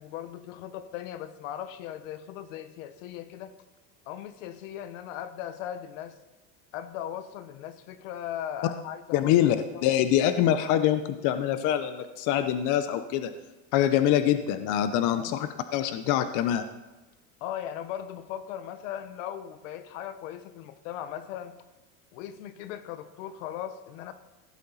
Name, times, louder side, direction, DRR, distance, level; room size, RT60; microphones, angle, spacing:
voice 1, 0.0-3.5 4.1-6.2 6.7-9.3 9.7-9.8 15.1-15.4 17.4-21.6 22.1-24.1, left 10 dB, 80° left, 11 dB, 1.1 m, -38 dB
voice 2, 9.1-9.6 9.8-13.3 13.7-16.7, left 11 dB, 55° left, 10 dB, 0.7 m, -24 dB
16.0 x 8.4 x 4.0 m, 1.1 s
cardioid pair, 145°, 38 cm